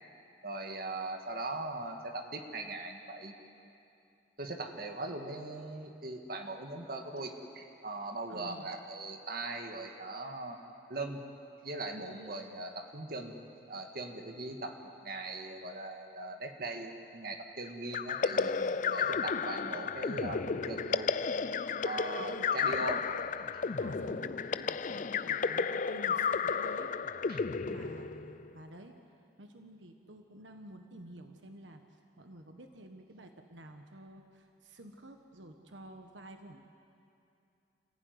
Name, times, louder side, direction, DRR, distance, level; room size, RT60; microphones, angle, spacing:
voice 1, 0.4-3.3 4.4-10.6 10.9-11.2 11.6-13.3 13.7-14.8 15.0-18.5 18.9-21.1 21.8-23.0 27.3-27.4, right 2 dB, 55° right, 4 dB, 2.1 m, -40 dB
voice 2, 8.3-8.7 18.3-19.1 22.2-23.1 23.7-26.9 27.6-29.0 29.4-36.7, right 1 dB, 90° right, 5 dB, 1.4 m, -51 dB
sound 1, 17.9-28.5, left 5 dB, 45° left, 0.5 m, -33 dB
29.0 x 15.5 x 9.6 m, 2.7 s
head